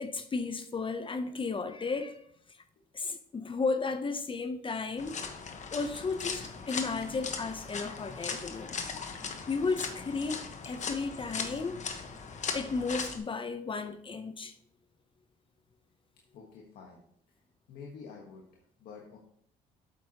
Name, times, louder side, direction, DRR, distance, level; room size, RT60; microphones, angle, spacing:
voice 1, 0.0-2.3 2.9-5.2 5.7-8.7 9.5-12.2 12.5-14.5, left 4 dB, 30° left, 0.7 m, -34 dB
sound 1, 5.0-13.2, left 5 dB, 45° left, 1.2 m, -38 dB
voice 2, 16.3-17.0 17.7-19.2, left 5 dB, 75° left, 1.3 m, -48 dB
8.3 x 7.7 x 2.9 m
cardioid pair, 85°, 16 cm